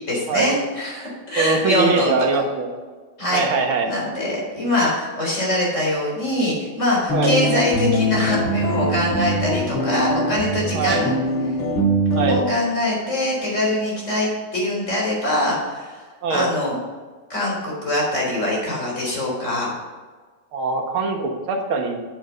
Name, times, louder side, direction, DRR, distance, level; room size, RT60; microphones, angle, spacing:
voice 1, 0.1-2.1 3.2-3.5 3.8-11.1 11.5-11.6 12.3-16.0 16.3-16.8 17.3-19.7, left 1 dB, 35° left, -4 dB, 4.3 m, -23 dB
voice 2, 1.4-2.7 3.3-3.9 7.1-7.4 10.7-11.0 12.2-12.4 16.2-16.5 20.5-22.0, right 4 dB, 80° right, 3 dB, 2.2 m, -22 dB
sound 1, 7.1-12.4, equal, 75° left, 2.9 m, -22 dB
8.7 x 8.5 x 5.5 m, 1.4 s
omnidirectional pair, 2.2 m